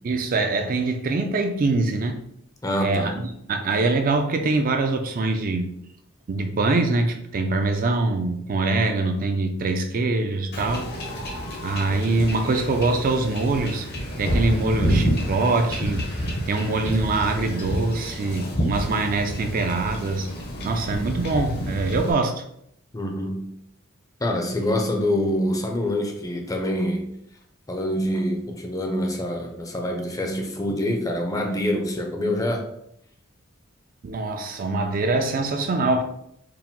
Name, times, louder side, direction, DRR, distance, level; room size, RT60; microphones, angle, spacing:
voice 1, 0.0-2.2 2.8-3.2 3.5-5.7 6.3-10.9 11.6-13.9 14.2-16.2 16.5-20.3 20.6-22.4 34.0-36.0, right 3 dB, 45° right, 6 dB, 0.4 m, -23 dB
voice 2, 2.6-3.2 22.9-23.5 24.2-27.1 27.7-32.6, left 1 dB, 15° left, 3 dB, 0.5 m, -25 dB
Wind / Ocean / Boat Water vehicle, 10.5-22.1, equal, 50° left, 0.8 m, -29 dB
4.7 x 2.0 x 3.6 m, 0.73 s
head